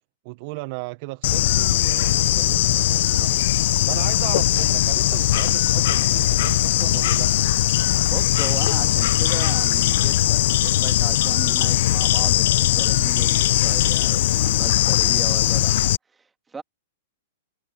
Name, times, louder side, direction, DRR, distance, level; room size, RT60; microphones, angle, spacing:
voice 1, 0.2-3.3 3.8-7.3, right 24 dB, 45° right, 0.6 m, -35 dB
Bird / Insect, 1.2-16.0, left 14 dB, 60° left, 0.5 m, -20 dB
voice 2, 8.1-15.7 16.1-16.6, right 4 dB, 10° right, 1.9 m, -37 dB
hypercardioid pair, 140°, 0 cm